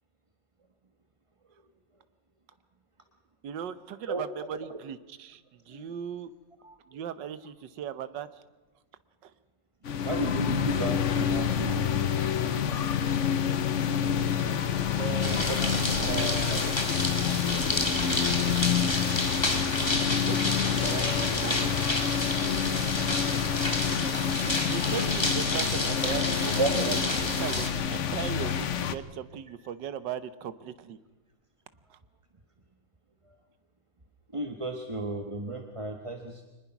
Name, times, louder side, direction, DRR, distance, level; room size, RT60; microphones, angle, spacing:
voice 1, 3.4-6.3 6.9-8.4 9.2-9.3 14.8-15.7 16.0-16.8 20.2-22.0 24.5-27.0 27.2-31.0 31.9-32.0, right 9 dB, 70° right, 13 dB, 1.6 m, -38 dB
voice 2, 4.1-4.8 5.7-5.9 6.6-7.0 10.0-11.9 15.3-16.2 16.5-16.6 26.6-26.7 33.2-33.4 34.3-36.4, right 2 dB, 20° right, 5 dB, 1.2 m, -34 dB
sound 1, 9.8-28.9, left 8 dB, 50° left, 1.0 m, -28 dB
sound 2, 15.2-27.7, left 1 dB, 15° left, 2.2 m, -30 dB
24.5 x 20.5 x 6.0 m, 1.2 s
omnidirectional pair, 2.0 m